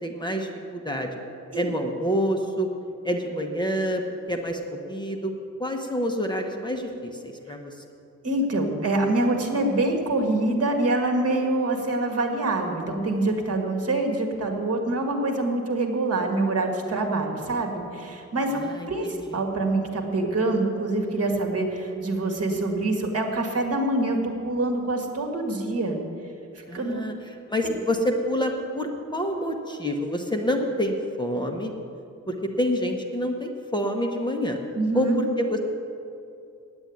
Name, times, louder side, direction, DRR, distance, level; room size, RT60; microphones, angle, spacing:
voice 1, 0.0-1.1 1.5-2.7 3.0-4.0 4.3-4.6 4.9-5.3 5.6-7.7 18.5-19.4 26.7-31.7 32.3-34.6 34.9-35.6, equal, 15° left, 2 dB, 0.9 m, -27 dB
voice 2, 8.2-18.6 18.9-26.0 26.7-27.0 34.8-35.2, right 2 dB, 50° right, 2 dB, 1.7 m, -25 dB
8.8 x 8.8 x 9.4 m, 2.6 s
wide cardioid pair, 150°, 31 cm